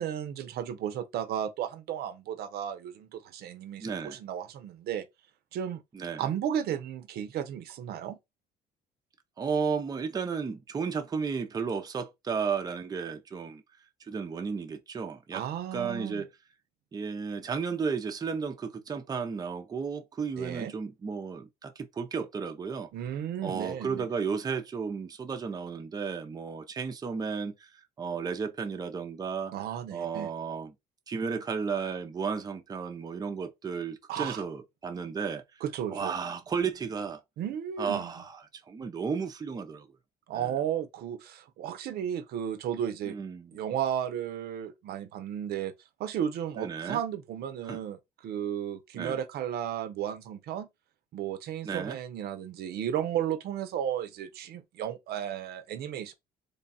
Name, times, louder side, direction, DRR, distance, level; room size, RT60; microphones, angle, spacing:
voice 1, 0.0-5.1 5.5-5.8 6.2-8.2 15.3-16.2 20.4-20.7 22.9-24.1 29.5-30.3 34.1-34.4 35.6-36.2 37.4-38.1 40.3-43.2 43.5-45.7 46.0-50.7 51.1-56.1, right 9 dB, 70° right, 0.6 m, -34 dB
voice 2, 3.8-4.2 5.9-6.3 9.4-13.6 14.0-15.4 15.7-16.3 16.9-22.9 23.4-29.5 29.9-30.7 31.1-35.6 35.9-37.2 37.8-38.4 38.7-39.9 40.3-40.5 43.0-43.6 46.6-47.0 47.6-47.8 48.9-49.2 51.6-52.0, right 5 dB, 25° right, 0.5 m, -33 dB
3.4 x 2.3 x 4.1 m
cardioid pair, 110°, 17 cm